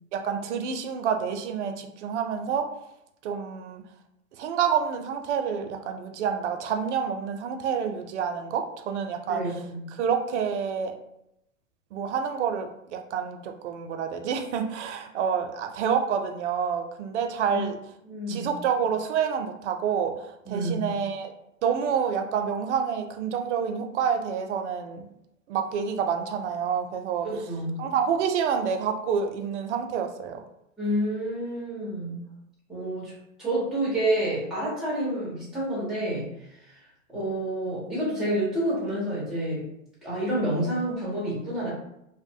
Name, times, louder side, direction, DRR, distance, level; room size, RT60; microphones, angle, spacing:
voice 1, 0.1-2.7 3.2-3.8 4.4-9.4 10.0-11.0 11.9-17.8 18.3-21.3 21.6-25.1 25.5-27.3 27.8-30.4, right 7 dB, 60° right, 5 dB, 0.5 m, -28 dB
voice 2, 9.3-9.9 17.5-17.6 18.0-18.5 20.5-21.0 27.2-27.9 30.8-32.3 32.7-33.1 33.4-36.3 36.6-36.8 37.1-39.7 40.0-41.7, right 1 dB, ahead, -7 dB, 0.4 m, -29 dB
2.5 x 2.1 x 2.6 m, 0.80 s
hypercardioid pair, 135°, 40 cm